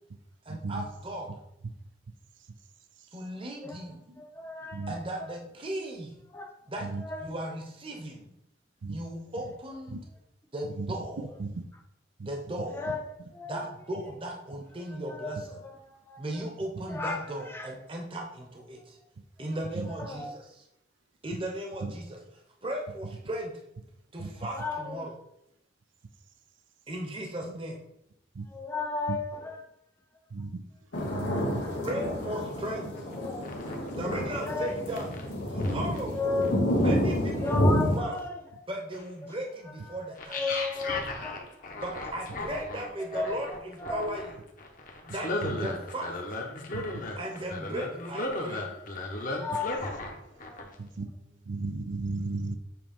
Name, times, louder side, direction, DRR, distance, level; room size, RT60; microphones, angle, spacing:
voice 1, 0.4-1.3 3.1-4.0 4.9-6.1 6.7-6.9 7.2-8.3 8.9-10.0 10.5-11.3 12.2-12.9 13.5-15.6 16.2-19.0 19.4-20.6 21.2-22.2 22.6-23.5 24.1-25.1 26.9-27.8 31.8-32.9 34.0-35.1 35.5-36.2 36.8-38.1 38.7-40.4 41.8-44.4 45.1-46.1 47.2-48.7, right 1 dB, 30° right, 1 dB, 0.9 m, -37 dB
voice 2, 4.2-4.9 6.3-6.5 7.0-7.3 12.7-13.1 13.3-13.5 15.1-15.8 16.1-16.2 16.9-17.2 17.5-17.7 20.0-20.3 24.4-25.1 28.5-29.5 31.5-31.7 33.2-33.5 34.3-34.7 35.6-35.7 36.1-36.6 37.4-38.6 39.2-39.3 40.3-41.5 43.1-44.2 46.9-47.1 47.7-47.8 49.3-49.9 50.5-50.7, left 3 dB, 15° left, 2 dB, 0.6 m, -34 dB
sound 1, 30.9-38.0, equal, 65° left, 1.8 m, -29 dB
voice 3, 31.1-31.6 46.7-46.8 51.0-51.1 51.5-52.6, right 3 dB, 80° right, 8 dB, 0.5 m, -33 dB
sound 2, 33.0-33.1 33.4-35.2 35.6-36.0 36.4-36.5 37.2-37.3 37.9-38.2 38.9-39.0 40.2-50.1 50.4-50.8, left 2 dB, 45° left, 1.0 m, -36 dB
7.5 x 3.1 x 5.3 m, 0.80 s
head